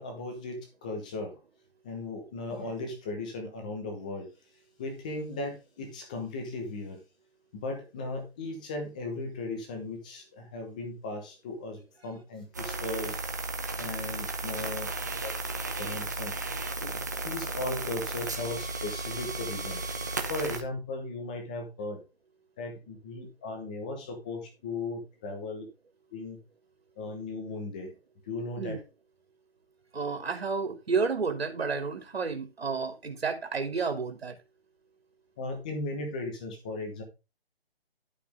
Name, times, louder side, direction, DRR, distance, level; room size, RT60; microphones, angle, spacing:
voice 1, 0.0-1.4 1.8-4.3 4.8-7.0 7.5-13.2 13.8-14.9 15.2-15.3 15.7-16.3 16.8-19.8 20.3-22.0 22.6-25.6 26.1-26.4 27.0-28.0 28.3-28.8 35.4-37.0, left 2 dB, 10° left, 1.0 m, -37 dB
sound 1, 12.5-20.6, right 2 dB, 20° right, 0.8 m, -34 dB
voice 2, 29.9-34.4, right 5 dB, 75° right, 2.8 m, -31 dB
12.0 x 6.0 x 3.5 m
hypercardioid pair, 175°, 31 cm